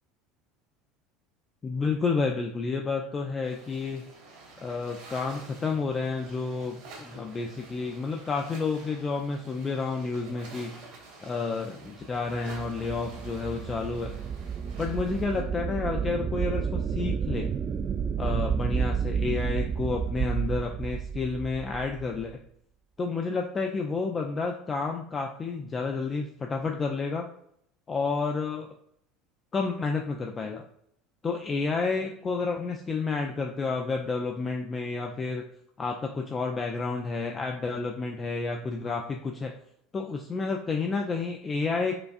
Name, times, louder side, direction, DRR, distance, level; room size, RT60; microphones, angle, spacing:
voice 1, 1.6-4.0 4.6-10.8 11.2-14.1 14.8-17.5 18.2-22.4 23.0-27.3 27.9-28.7 29.5-30.6 31.2-35.4 35.8-39.5 39.9-41.9, left 4 dB, 30° left, 2 dB, 0.4 m, -30 dB
sound 1, 3.4-15.4, right 3 dB, 70° right, 1.3 m, -49 dB
sound 2, 12.3-22.3, right 7 dB, 40° right, 0.4 m, -31 dB
5.0 x 2.3 x 2.5 m, 0.70 s
hypercardioid pair, 75°, 0 cm